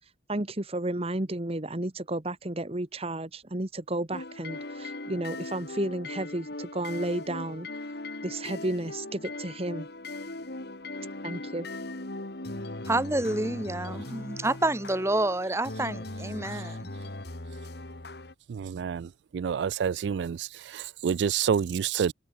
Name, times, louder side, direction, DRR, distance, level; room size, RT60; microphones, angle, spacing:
voice 1, 0.3-7.7 8.2-9.9 11.2-11.7, right 1 dB, 35° right, 1.5 m, -32 dB
sound 1, 4.1-18.3, left 2 dB, 65° left, 2.4 m, -39 dB
voice 2, 12.8-16.9, right 2 dB, 15° right, 1.5 m, -28 dB
voice 3, 18.5-22.1, right 7 dB, 70° right, 0.3 m, -28 dB
head